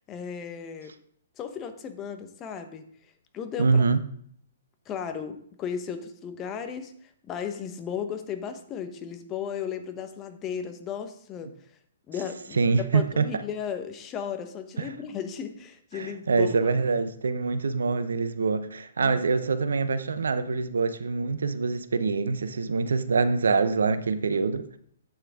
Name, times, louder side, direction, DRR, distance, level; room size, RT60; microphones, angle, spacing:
voice 1, 0.1-0.9 1.4-2.9 3.3-3.9 4.9-11.5 12.1-16.7 19.0-19.2, left 7 dB, 25° left, 1.1 m, -35 dB
voice 2, 3.6-4.0 12.6-13.4 14.8-14.9 15.9-24.8, right 4 dB, 75° right, 0.8 m, -25 dB
11.0 x 8.8 x 3.7 m
figure-of-eight pair, 125°, 0 cm